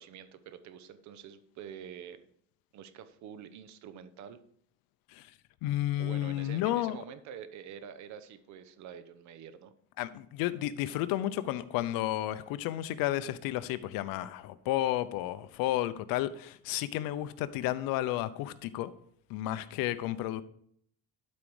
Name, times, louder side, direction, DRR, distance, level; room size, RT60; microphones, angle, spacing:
voice 1, 0.0-2.3 2.7-4.4 5.9-9.7, right 8 dB, 50° right, 1.0 m, -47 dB
voice 2, 5.6-7.0 10.0-18.9 19.3-20.4, left 14 dB, 65° left, 0.8 m, -32 dB
12.0 x 5.2 x 4.9 m
cardioid pair, 140°, 37 cm